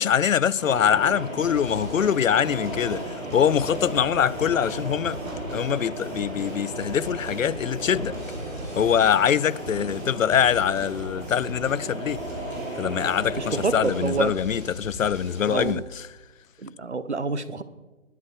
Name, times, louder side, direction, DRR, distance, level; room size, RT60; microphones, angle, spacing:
voice 1, 0.0-3.0 3.3-5.2 5.5-8.1 8.8-12.2 12.8-15.8, left 8 dB, 80° left, 0.5 m, -23 dB
sound 1, 0.5-14.3, right 1 dB, 5° right, 2.5 m, -34 dB
sound 2, 1.3-15.7, right 1 dB, 10° left, 3.4 m, -41 dB
voice 2, 13.4-14.3 15.5-15.8 16.6-17.6, right 4 dB, 60° right, 1.2 m, -27 dB
19.5 x 11.0 x 4.7 m
hypercardioid pair, 180°, 39 cm